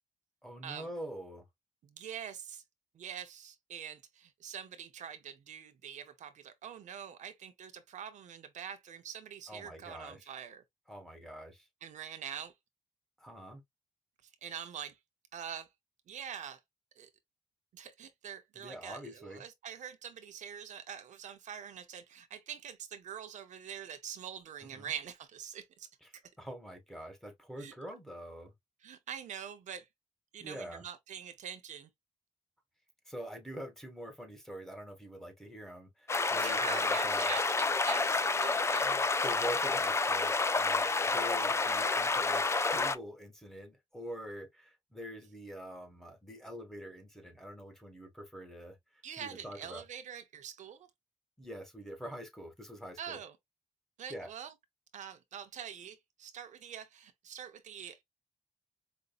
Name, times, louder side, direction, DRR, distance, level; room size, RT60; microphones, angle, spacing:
voice 1, 0.4-1.4 9.5-10.3 10.9-11.7 13.2-13.6 18.5-19.4 24.7-24.9 26.0-28.5 30.4-30.8 33.1-37.4 38.8-49.8 51.4-53.2 54.1-54.3, equal, 5° left, 1.6 m, -45 dB
voice 2, 1.8-2.6 2.9-10.6 11.8-12.5 14.4-15.0 15.3-15.7 16.1-16.6 17.0-17.1 17.7-25.9 27.6-27.7 28.8-29.9 30.3-31.9 36.4-39.0 49.0-50.9 53.0-53.3 54.0-54.5 54.9-58.0, right 8 dB, 80° right, 0.7 m, -44 dB
sound 1, 36.1-43.0, left 3 dB, 20° left, 0.4 m, -29 dB
5.1 x 2.6 x 2.4 m
cardioid pair, 100°, 12 cm